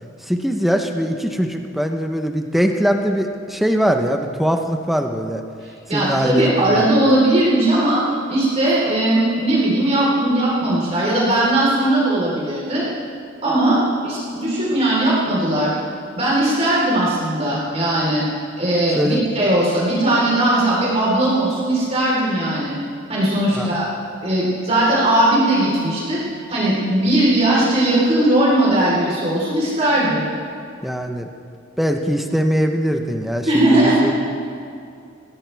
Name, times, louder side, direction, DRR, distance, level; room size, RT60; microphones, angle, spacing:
voice 1, 0.2-5.4 5.9-6.8 19.0-19.3 23.5-23.7 30.8-31.3 31.8-34.1, equal, ahead, 4 dB, 0.9 m, -21 dB
voice 2, 5.9-8.0 8.3-12.8 13.4-15.7 16.1-18.2 18.6-22.8 23.1-23.9 24.2-26.2 26.5-30.2 33.5-34.1, right 1 dB, 30° right, -7 dB, 4.0 m, -18 dB
21.5 x 16.5 x 3.5 m, 2.4 s
head